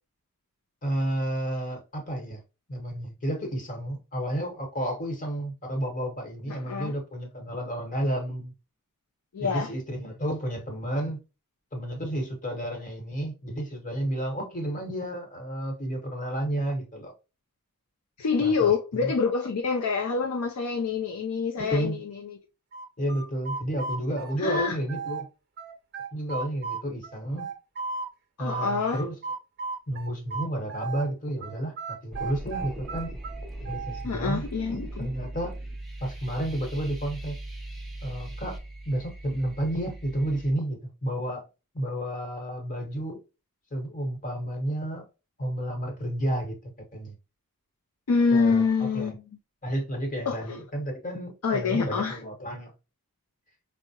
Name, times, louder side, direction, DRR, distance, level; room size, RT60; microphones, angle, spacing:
voice 1, 0.8-2.4 2.7-8.5 9.4-11.2 11.7-17.1 18.4-19.1 21.6-22.0 23.0-25.3 26.1-27.5 28.4-29.2 29.9-33.1 33.6-35.5 36.0-37.4 38.0-38.5 38.9-41.4 41.7-43.2 43.7-45.1 45.4-46.6 46.9-47.1 48.3-48.6 48.9-49.1 49.6-52.7, right 1 dB, 35° left, 1.0 m, -31 dB
voice 2, 6.5-6.9 9.3-9.7 18.2-22.0 22.2-22.4 24.4-24.8 28.4-29.0 34.0-35.1 48.1-49.2 50.3-50.4 51.4-52.2, left 5 dB, 80° left, 0.5 m, -26 dB
sound 1, 22.7-25.3 25.6-28.1 28.5-31.1 31.4-34.0, right 4 dB, 45° right, 0.6 m, -35 dB
sound 2, 32.1-40.5, right 1 dB, ahead, 0.6 m, -39 dB
4.5 x 2.0 x 2.7 m
head